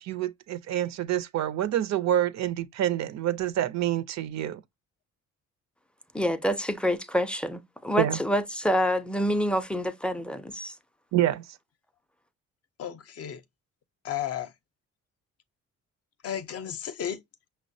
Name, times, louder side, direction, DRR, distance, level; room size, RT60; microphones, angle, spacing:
voice 1, 0.0-4.6 8.0-8.2 11.1-11.6, right 12 dB, 65° right, 0.5 m, -27 dB
voice 2, 6.1-10.7, equal, 5° left, 0.4 m, -27 dB
voice 3, 12.8-13.4 14.0-14.5 16.2-17.2, left 9 dB, 55° left, 0.5 m, -33 dB
5.5 x 2.1 x 2.6 m
cardioid pair, 90°, 30 cm